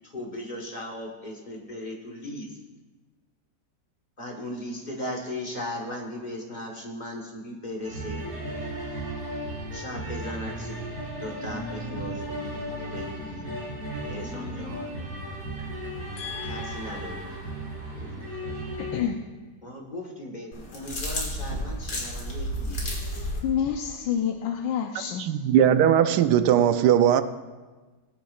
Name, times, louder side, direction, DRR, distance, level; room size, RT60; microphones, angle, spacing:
voice 1, 0.0-2.6 4.2-8.2 9.7-10.8 11.2-13.6 14.1-14.9 16.4-17.4 17.9-18.3 19.6-23.1, left 1 dB, 25° left, 1.3 m, -37 dB
sound 1, 7.8-19.0, right 1 dB, 55° right, 3.3 m, -35 dB
voice 2, 16.2-17.0 18.8-19.1 23.4-25.2, left 8 dB, 90° left, 1.4 m, -29 dB
sound 2, 20.5-23.4, equal, 70° left, 2.6 m, -31 dB
voice 3, 25.2-27.2, right 10 dB, 75° right, 1.1 m, -19 dB
19.5 x 8.6 x 2.4 m
omnidirectional pair, 1.9 m